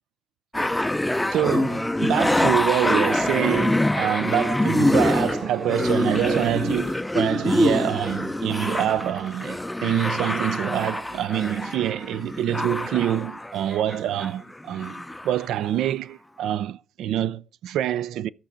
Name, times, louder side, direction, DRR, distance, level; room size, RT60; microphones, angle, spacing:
sound 1, 0.5-14.3 14.6-15.4 15.9-16.0, left 1 dB, 10° left, 0.4 m, -25 dB
voice 1, 1.3-18.3, right 11 dB, 80° right, 0.4 m, -26 dB
13.0 x 5.7 x 5.0 m
cardioid pair, 90°, 0 cm